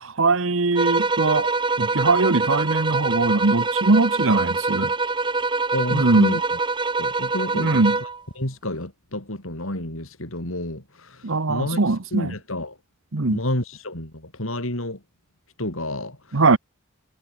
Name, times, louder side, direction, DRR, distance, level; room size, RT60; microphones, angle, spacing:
voice 1, 0.0-1.5 1.8-4.9 5.9-6.4 7.5-8.0 11.2-12.3 13.1-13.4 16.3-16.6, right 3 dB, 70° right, 1.1 m, -21 dB
sound 1, 0.8-8.2, right 3 dB, 20° right, 1.8 m, -24 dB
voice 2, 5.7-6.6 7.0-8.1 8.4-12.8 13.3-15.0 15.6-16.6, left 1 dB, 75° left, 6.2 m, -30 dB
head